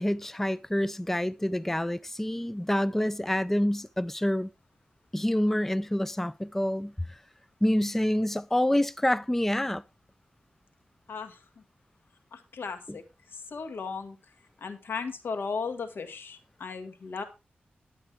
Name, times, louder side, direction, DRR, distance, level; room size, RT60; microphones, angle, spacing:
voice 1, 0.0-4.5 5.1-7.2 7.6-9.8, left 1 dB, 10° left, 0.4 m, -27 dB
voice 2, 11.1-11.4 12.3-13.0 13.3-14.2 14.6-17.2, left 5 dB, 80° left, 1.8 m, -36 dB
11.0 x 8.5 x 3.4 m
cardioid pair, 70°, 4 cm